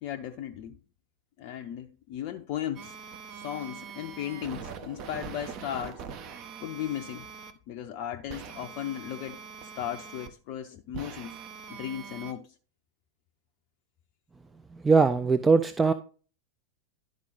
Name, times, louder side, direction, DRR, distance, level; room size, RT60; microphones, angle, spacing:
voice 1, 0.0-0.8 1.4-3.0 3.3-6.0 6.6-7.3 7.7-9.4 9.8-11.3 11.7-12.5, left 11 dB, 45° left, 0.6 m, -36 dB
sound 1, 2.8-7.5 8.3-10.3 10.9-12.3, right 6 dB, 40° right, 1.0 m, -43 dB
voice 2, 14.7-15.9, right 4 dB, 10° right, 0.4 m, -21 dB
11.5 x 4.9 x 3.9 m
figure-of-eight pair, 90°, 0 cm